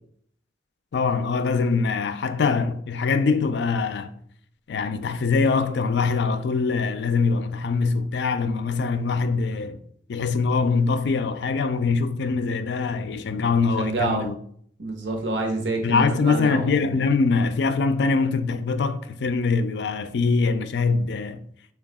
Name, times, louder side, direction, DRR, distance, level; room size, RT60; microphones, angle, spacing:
voice 1, 0.9-4.1 4.7-9.8 10.1-14.4 15.8-21.4, left 4 dB, 70° left, 0.4 m, -23 dB
voice 2, 13.8-14.3 14.8-17.0, right 2 dB, 85° right, 0.8 m, -27 dB
4.7 x 2.3 x 3.5 m
head